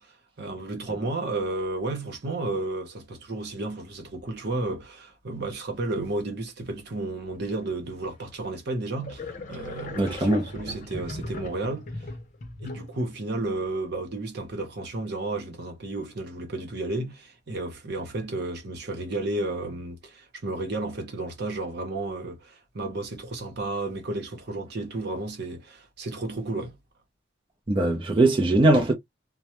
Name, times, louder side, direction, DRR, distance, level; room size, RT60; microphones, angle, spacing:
voice 1, 0.0-12.1 12.6-26.8, right 2 dB, 65° right, 0.8 m, -32 dB
sound 1, 8.2-8.3 8.9-13.1, left 2 dB, 45° left, 0.6 m, -38 dB
voice 2, 10.0-10.5 27.7-28.9, right 2 dB, 30° right, 0.5 m, -20 dB
2.3 x 2.1 x 2.8 m
head